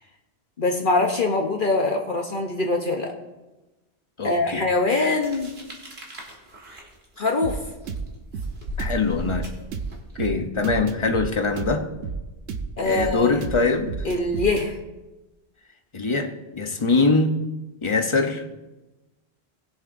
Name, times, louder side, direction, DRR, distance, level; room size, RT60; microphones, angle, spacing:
voice 1, 0.6-3.1 4.2-5.5 7.2-7.6 12.8-13.4 14.0-14.7, left 3 dB, 50° left, 1.1 m, -23 dB
voice 2, 4.2-4.7 8.8-9.5 10.2-11.9 12.8-14.1 15.9-17.4 17.8-18.5, left 3 dB, 30° left, 0.8 m, -23 dB
sound 1, 5.0-10.2, equal, 65° right, 2.2 m, -38 dB
sound 2, 7.4-14.7, right 5 dB, 90° right, 1.1 m, -32 dB
20.0 x 7.3 x 2.6 m
omnidirectional pair, 1.1 m